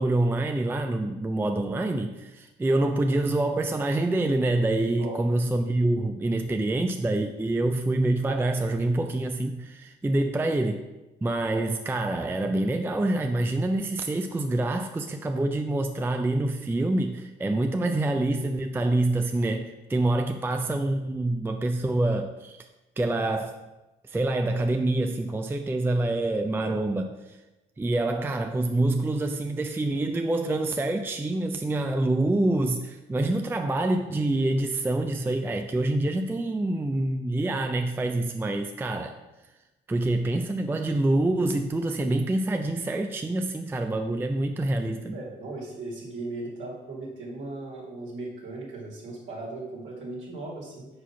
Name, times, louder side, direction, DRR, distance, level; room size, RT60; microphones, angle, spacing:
voice 1, 0.0-10.8 11.2-22.6 23.0-23.6 24.1-27.4 27.8-39.2 39.9-45.2, right 2 dB, 10° right, 5 dB, 0.3 m, -26 dB
voice 2, 45.1-50.9, right 2 dB, 75° right, -5 dB, 1.9 m, -37 dB
4.8 x 4.2 x 5.6 m, 1.0 s
cardioid pair, 90°, 20 cm